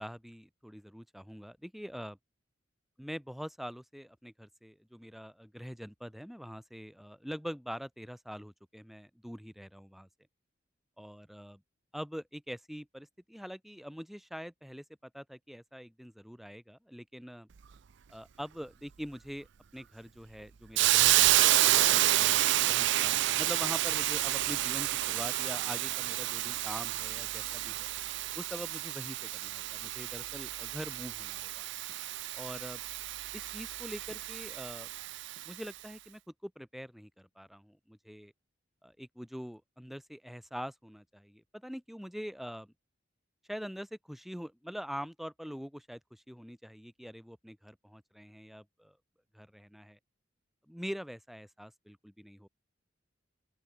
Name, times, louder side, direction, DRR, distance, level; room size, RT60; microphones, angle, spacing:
voice 1, 0.0-2.2 3.0-10.1 11.0-11.6 11.9-17.5 18.1-19.5 19.7-22.4 22.7-27.9 28.4-31.6 32.3-32.8 33.3-34.9 35.5-38.3 38.8-42.7 43.5-49.0 49.3-50.0 50.7-52.5, equal, ahead, 2.1 m, -44 dB
Hiss, 20.8-35.5, right 15 dB, 65° right, 0.5 m, -29 dB
open air
head